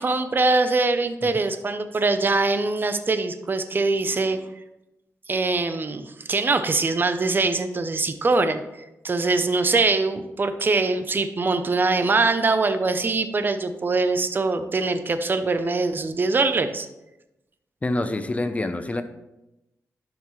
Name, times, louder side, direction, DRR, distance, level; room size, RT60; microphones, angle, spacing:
voice 1, 0.0-4.5 5.3-8.6 9.0-16.9, right 3 dB, 35° right, 9 dB, 0.7 m, -23 dB
voice 2, 17.8-19.0, left 2 dB, 25° left, 9 dB, 0.6 m, -26 dB
11.5 x 5.9 x 3.2 m, 0.93 s
wide cardioid pair, 100°, 6 cm